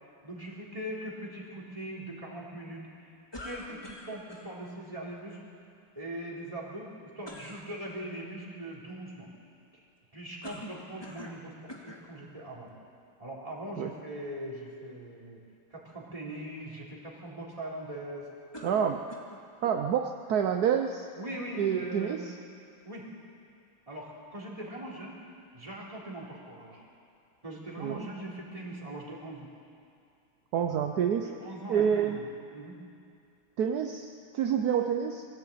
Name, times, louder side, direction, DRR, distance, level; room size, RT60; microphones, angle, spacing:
voice 1, 0.2-3.1 3.4-5.4 6.0-6.9 7.1-9.3 10.1-12.7 13.2-15.4 15.7-18.3 21.2-22.3 22.8-23.0 23.9-25.2 25.5-26.8 27.4-29.5 31.2-32.2 32.5-32.8, right 1 dB, 15° right, -3 dB, 3.8 m, -41 dB
sound 1, 3.3-4.5 7.2-7.7 10.4-11.4 11.7-12.1 12.9-13.0 18.5-19.4, left 1 dB, 10° left, 1.9 m, -44 dB
voice 2, 18.6-19.1 19.6-21.1 21.5-22.3 27.8-28.1 30.5-31.4 31.7-32.2 33.6-35.3, right 8 dB, 60° right, 5 dB, 1.1 m, -28 dB
23.0 x 15.5 x 8.7 m, 2.4 s
omnidirectional pair, 2.4 m